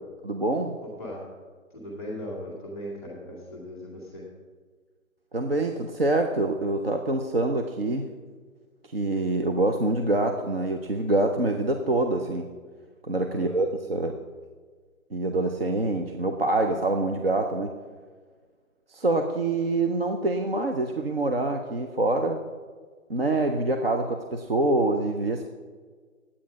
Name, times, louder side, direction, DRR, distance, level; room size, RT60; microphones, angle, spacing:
voice 1, 0.2-0.8 5.3-8.1 8.9-12.5 13.0-14.2 15.1-17.7 18.9-22.4 23.1-25.4, right 2 dB, 45° right, 4 dB, 0.6 m, -25 dB
voice 2, 0.8-1.3 1.7-4.2 13.3-13.6, equal, 5° right, -7 dB, 1.7 m, -38 dB
9.4 x 8.6 x 5.1 m, 1.5 s
hypercardioid pair, 175°, 41 cm